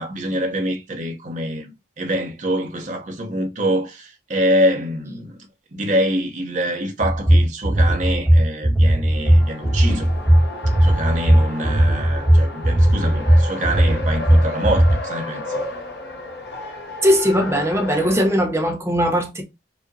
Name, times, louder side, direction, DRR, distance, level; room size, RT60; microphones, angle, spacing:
voice 1, 0.0-5.4 5.7-10.1 10.7-15.6, equal, 45° right, 0.9 m, -25 dB
sound 1, 7.0-15.0, right 1 dB, 10° left, 1.2 m, -16 dB
Race car auto racing, 9.1-18.3, left 2 dB, 60° left, 1.0 m, -33 dB
voice 2, 17.0-19.4, equal, 15° right, 1.0 m, -19 dB
5.0 x 2.8 x 2.7 m
head